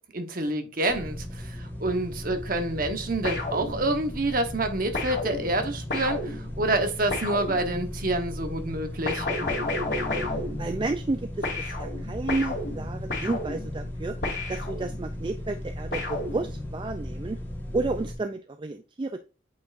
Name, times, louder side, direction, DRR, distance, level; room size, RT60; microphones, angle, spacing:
voice 1, 0.1-9.3, right 2 dB, 45° right, 1.0 m, -28 dB
sound 1, 0.9-18.2, left 1 dB, 10° left, 1.6 m, -37 dB
sound 2, 3.2-4.2 4.9-8.1 9.0-11.2 11.4-15.2 15.9-16.9, left 2 dB, 60° left, 2.8 m, -33 dB
voice 2, 10.6-14.2 14.5-17.4 17.7-19.2, right 2 dB, 25° right, 0.3 m, -31 dB
8.3 x 4.5 x 2.5 m
head